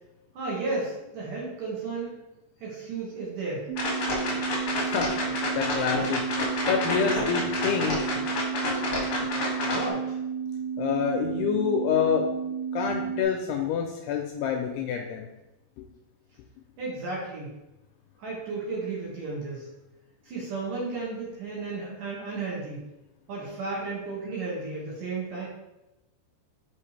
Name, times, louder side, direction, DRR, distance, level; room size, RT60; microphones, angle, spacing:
voice 1, 0.3-2.2 2.6-3.7 9.7-10.2 16.8-17.5 18.2-19.7 20.2-22.8 23.3-25.5, right 3 dB, 60° right, -5 dB, 2.6 m, -33 dB
sound 1, 3.7-13.2, right 7 dB, 90° right, 2.1 m, -32 dB
sound 2, 3.8-9.9, left 2 dB, 60° left, 1.7 m, -29 dB
voice 2, 4.8-5.1 5.5-6.2 6.7-8.0 10.8-12.2 12.7-15.3, left 7 dB, 85° left, 2 dB, 2.4 m, -27 dB
6.4 x 5.7 x 3.3 m, 0.95 s
omnidirectional pair, 5.1 m